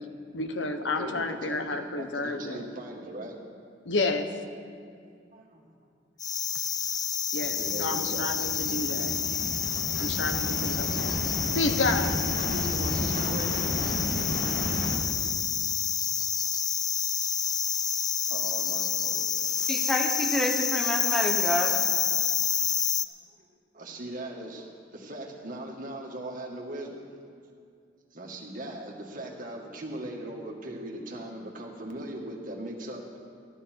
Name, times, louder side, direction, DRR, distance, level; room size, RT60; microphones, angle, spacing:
voice 1, 0.3-2.7 3.8-4.3 7.3-9.2 10.0-11.1 11.5-12.2, left 2 dB, 80° left, 7 dB, 1.0 m, -30 dB
voice 2, 1.0-3.4 5.3-5.7 7.6-8.3 12.5-13.7 18.2-19.7 22.7-22.8 23.3-23.5 23.7-27.1 28.1-33.2, right 1 dB, 50° right, -1 dB, 1.9 m, -39 dB
sound 1, 6.2-23.1, left 7 dB, 20° left, 0.4 m, -28 dB
sound 2, 7.4-15.0, equal, 55° left, 2.2 m, -33 dB
voice 3, 19.7-21.8, right 1 dB, 5° left, 2 dB, 1.0 m, -28 dB
14.0 x 14.0 x 4.5 m, 2.3 s
head